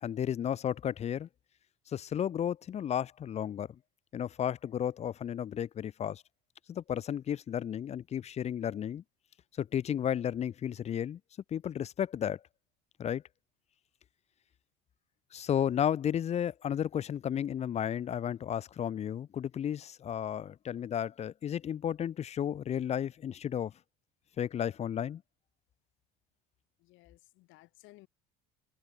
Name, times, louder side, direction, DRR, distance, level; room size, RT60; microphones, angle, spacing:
voice 1, 0.0-1.3 1.9-3.7 4.1-6.2 6.7-9.0 9.6-11.2 11.5-12.4 13.0-13.2 15.3-23.7 24.4-25.2, left 9 dB, 30° left, 0.6 m, -33 dB
voice 2, 26.8-28.1, left 20 dB, 70° left, 4.8 m, -58 dB
supercardioid pair, 105°, 21 cm